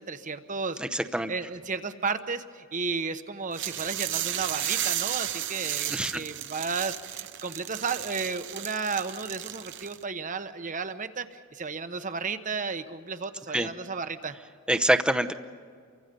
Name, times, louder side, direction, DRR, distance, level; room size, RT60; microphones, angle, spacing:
voice 1, 0.0-0.8 1.3-14.4, right 4 dB, 40° right, 9 dB, 1.1 m, -33 dB
voice 2, 0.8-1.3 5.9-6.2 13.5-13.7 14.7-15.3, right 1 dB, 5° right, 8 dB, 0.8 m, -25 dB
sound 1, 3.5-10.0, right 12 dB, 60° right, 0.8 m, -33 dB
29.5 x 24.0 x 5.3 m, 2.1 s
head